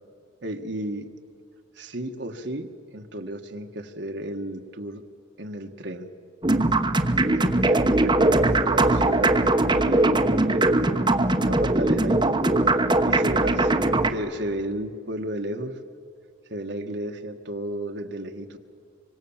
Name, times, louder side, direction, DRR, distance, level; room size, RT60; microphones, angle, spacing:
voice 1, 0.4-1.1 1.7-5.0 5.4-6.1 7.2-12.4 13.0-13.8 14.1-15.7 16.5-18.6, right 1 dB, 60° right, 5 dB, 1.5 m, -33 dB
sound 1, 6.4-14.1, right 2 dB, 25° right, 1.1 m, -21 dB
25.0 x 25.0 x 7.2 m, 2.4 s
head